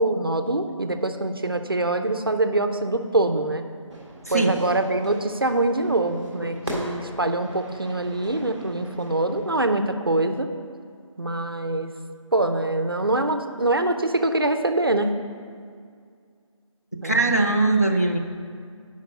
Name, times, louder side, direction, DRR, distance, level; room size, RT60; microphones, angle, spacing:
voice 1, 0.0-3.6 4.3-10.5 11.2-11.9 12.3-15.1 17.0-17.4, right 2 dB, 45° right, 8 dB, 0.4 m, -24 dB
Fire / Fireworks, 3.9-9.5, equal, 5° left, 0.8 m, -39 dB
voice 2, 4.3-4.6 6.4-6.5 16.9-18.2, right 2 dB, 30° left, 1 dB, 0.4 m, -21 dB
7.8 x 5.2 x 5.1 m, 2.1 s
figure-of-eight pair, 170°, 17 cm